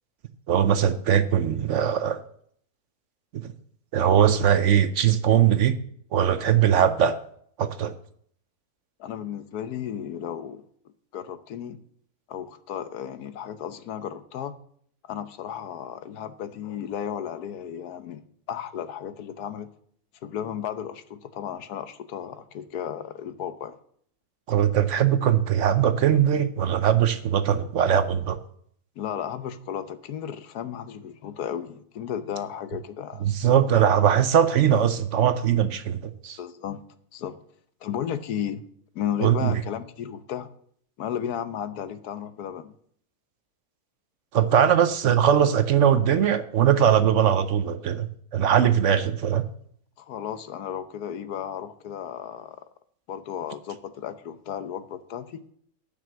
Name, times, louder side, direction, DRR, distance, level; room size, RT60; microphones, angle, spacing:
voice 1, 0.5-2.2 3.4-3.5 3.9-5.7 6.1-7.2 7.6-7.9 24.5-28.4 33.2-36.4 39.2-39.5 44.3-48.1 48.3-49.4, right 9 dB, 60° right, 11 dB, 0.9 m, -21 dB
voice 2, 9.0-10.6 11.1-11.8 12.3-14.5 15.0-18.2 18.5-19.7 20.2-23.8 29.0-33.3 36.4-36.8 37.1-37.4 37.8-38.6 38.9-40.5 41.0-42.7 50.0-52.6 53.1-55.4, left 9 dB, 85° left, 12 dB, 1.3 m, -34 dB
9.2 x 6.0 x 7.6 m, 0.63 s
omnidirectional pair, 1.6 m